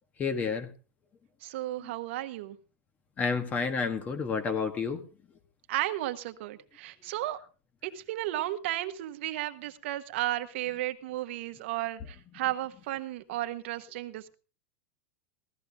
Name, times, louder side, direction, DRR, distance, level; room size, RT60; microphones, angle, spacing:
voice 1, 0.2-0.7 1.8-1.9 3.2-5.0, left 5 dB, 25° left, 9 dB, 1.6 m, -30 dB
voice 2, 1.4-2.6 5.7-7.4 7.8-14.3, right 15 dB, 65° right, 9 dB, 1.3 m, -34 dB
16.5 x 13.5 x 3.6 m, 0.34 s
supercardioid pair, 145°, 7 cm